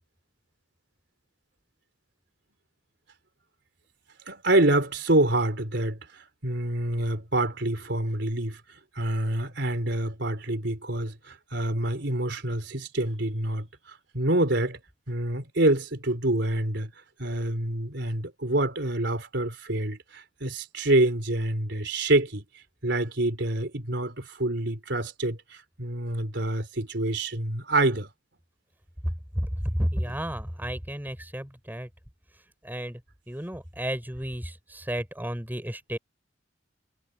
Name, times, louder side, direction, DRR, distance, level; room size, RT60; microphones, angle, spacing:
voice 1, 4.3-6.0 6.4-8.6 9.0-14.8 15.1-16.9 17.2-22.4 22.8-28.1, right 1 dB, 70° right, 4.3 m, -26 dB
voice 2, 29.0-31.9 32.6-33.0 33.3-36.0, equal, 10° right, 5.7 m, -32 dB
head